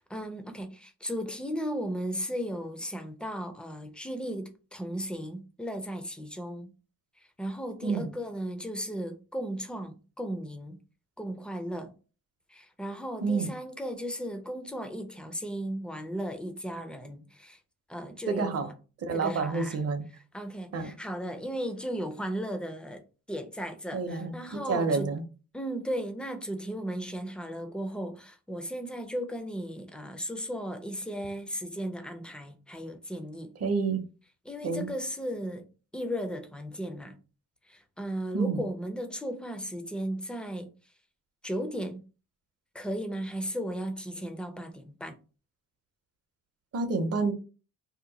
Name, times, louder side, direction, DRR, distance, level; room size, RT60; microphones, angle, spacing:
voice 1, 0.0-6.7 7.2-10.8 11.2-11.9 12.5-17.6 17.9-18.6 19.1-19.8 20.3-25.1 25.5-33.5 34.5-35.7 35.9-37.2 37.6-40.7 41.4-42.0 42.7-45.2, equal, 5° left, 0.4 m, -36 dB
voice 2, 13.2-13.5 18.3-18.7 19.0-20.0 20.7-20.9 23.9-24.3 24.7-25.2 33.6-34.0 34.6-34.9 38.3-38.6 46.7-47.3, right 4 dB, 45° right, 0.7 m, -28 dB
2.8 x 2.1 x 3.9 m
cardioid pair, 125°, 33 cm